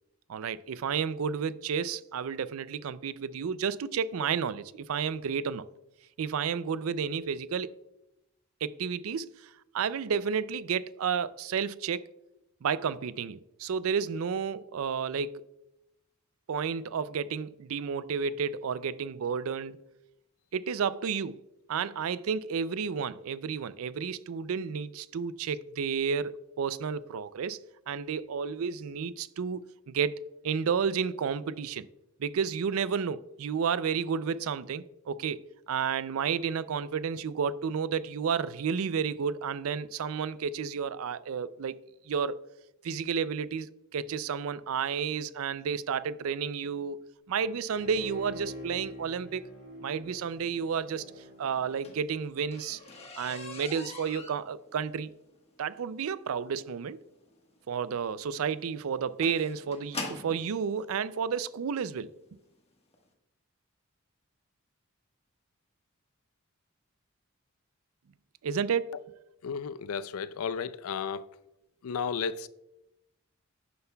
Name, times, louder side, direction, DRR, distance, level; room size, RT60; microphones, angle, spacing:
voice 1, 0.3-5.7 6.2-7.7 8.6-12.0 12.6-15.4 16.5-19.8 20.5-21.4 21.7-27.6 27.9-31.9 32.2-35.4 35.7-41.8 42.1-42.4 42.8-49.5 49.8-51.0 51.4-52.8 53.2-55.1 55.6-57.0 57.7-62.1 68.4-69.0, right 6 dB, 80° right, 0.4 m, -31 dB
Bowed string instrument, 47.7-52.4 52.8-52.9, equal, 55° left, 3.3 m, -46 dB
sound 1, 51.6-60.5 61.4-61.5 62.0-62.2 62.5-62.6 62.9-63.0, left 3 dB, 30° left, 1.3 m, -43 dB
voice 2, 69.4-71.3 71.8-72.5, left 6 dB, 90° left, 0.4 m, -33 dB
11.0 x 9.5 x 2.3 m
head